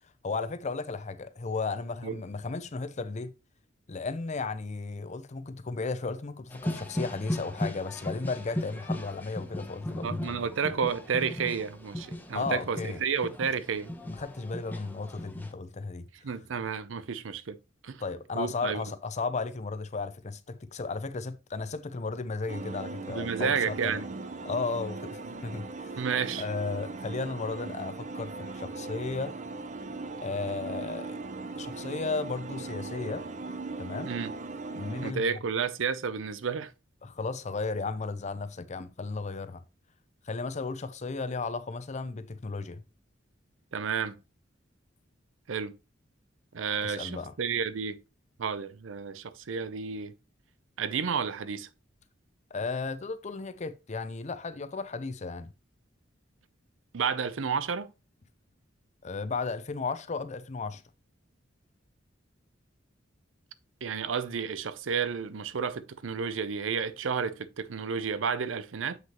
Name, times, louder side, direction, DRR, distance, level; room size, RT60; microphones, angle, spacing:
voice 1, 0.2-3.3 3.9-10.5 12.3-13.0 14.0-16.1 18.0-24.0 24.4-26.1 26.4-29.4 30.2-31.2 31.5-33.3 33.8-34.1 34.7-35.4 37.0-39.6 40.2-42.8 46.8-47.3 52.5-55.5 59.0-60.8, left 4 dB, 40° left, 0.6 m, -34 dB
sound 1, 6.5-15.5, left 1 dB, 10° left, 0.8 m, -37 dB
voice 2, 10.0-13.9 16.2-17.6 17.8-18.0 18.4-18.8 23.1-24.1 26.0-26.4 34.1-34.3 35.0-36.7 43.7-44.2 45.5-45.7 46.5-48.0 48.4-50.1 50.8-51.7 56.9-57.9 63.8-69.0, right 6 dB, 85° right, 0.6 m, -31 dB
sound 2, 22.5-35.1, right 3 dB, 40° right, 0.6 m, -39 dB
7.6 x 6.0 x 2.9 m
head